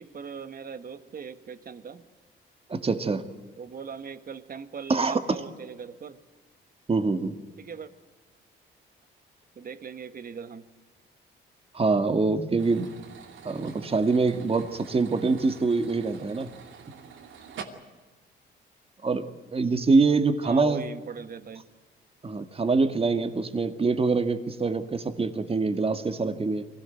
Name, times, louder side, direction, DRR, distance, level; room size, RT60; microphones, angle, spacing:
voice 1, 0.0-2.0 3.6-6.2 7.6-7.9 9.5-10.7 20.4-21.6, right 6 dB, 45° right, 11 dB, 1.7 m, -40 dB
voice 2, 2.7-3.2 4.9-5.4 6.9-7.4 11.7-12.9 13.4-16.5 19.0-20.8 22.2-26.7, right 3 dB, 30° right, 9 dB, 2.0 m, -25 dB
sound 1, 12.6-17.6, right 7 dB, 75° right, 2.7 m, -46 dB
23.5 x 17.0 x 9.3 m, 1.3 s
cardioid pair, 90°, 20 cm